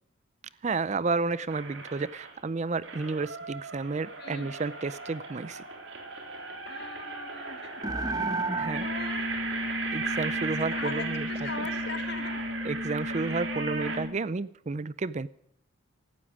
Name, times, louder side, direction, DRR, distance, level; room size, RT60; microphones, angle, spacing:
voice 1, 0.6-5.6 8.6-8.9 9.9-11.5 12.6-15.3, right 4 dB, 35° right, 18 dB, 0.4 m, -31 dB
sound 1, 1.5-2.4 2.8-14.0, right 4 dB, 60° right, 3.5 m, -37 dB
voice 2, 4.2-4.5 6.7-7.8 8.6-9.2 10.5-12.4, left 4 dB, 55° left, 8 dB, 2.2 m, -40 dB
sound 2, 7.8-14.2, equal, 20° right, 1.0 m, -34 dB
16.5 x 12.5 x 4.9 m, 0.71 s
head